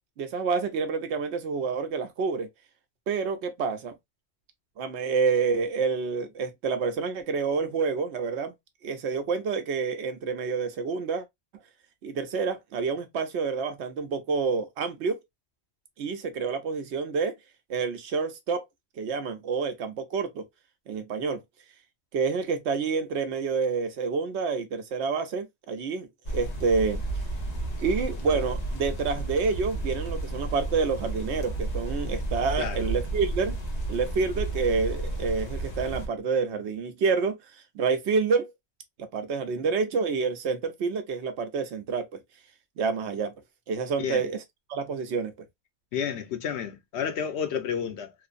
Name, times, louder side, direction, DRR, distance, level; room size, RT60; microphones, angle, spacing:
voice 1, 0.2-2.5 3.1-3.9 4.8-8.5 8.8-11.2 12.0-15.2 16.0-17.3 17.7-18.6 19.0-20.4 20.9-21.4 22.1-27.0 27.8-33.5 33.9-37.4 37.7-38.5 39.0-42.2 42.8-43.3 43.7-44.4 44.7-45.3, right 5 dB, 85° right, 0.9 m, -28 dB
sound 1, 26.2-36.1, right 2 dB, 40° left, 0.8 m, -32 dB
voice 2, 45.9-48.1, left 7 dB, 80° left, 0.9 m, -31 dB
3.1 x 2.0 x 2.4 m
omnidirectional pair, 1.1 m